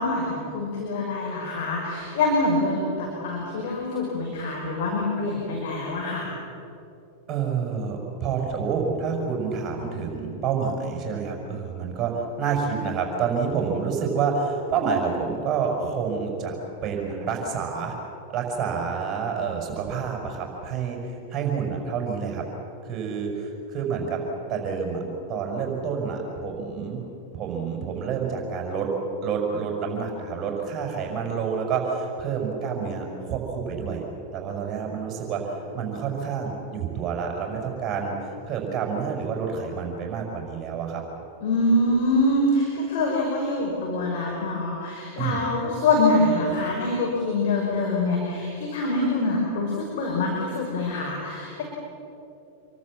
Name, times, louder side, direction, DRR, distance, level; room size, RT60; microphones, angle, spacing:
voice 1, 0.0-6.3 41.4-51.6, left 2 dB, 50° left, -2 dB, 5.8 m, -25 dB
voice 2, 7.3-16.5 16.8-17.9 18.3-22.5 22.8-24.2 24.5-25.0 25.3-27.1 27.3-28.9 29.2-34.0 34.3-41.0 45.2-45.4, right 6 dB, 30° right, 1 dB, 5.8 m, -28 dB
27.5 x 23.0 x 7.5 m, 2.8 s
figure-of-eight pair, 90°, 0 cm